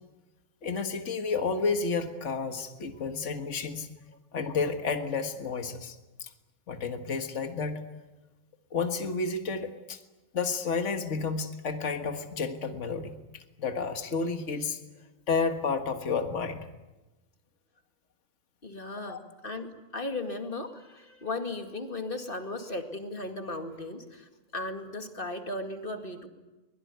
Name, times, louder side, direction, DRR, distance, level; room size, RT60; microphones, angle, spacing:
voice 1, 0.6-3.9 4.3-6.3 6.7-7.8 8.7-10.0 10.3-14.8 15.3-16.7 19.1-19.2, left 4 dB, 55° left, 6 dB, 1.9 m, -31 dB
voice 2, 18.6-26.3, left 2 dB, 40° left, 5 dB, 2.4 m, -36 dB
24.0 x 21.5 x 9.4 m, 1.1 s
omnidirectional pair, 1.5 m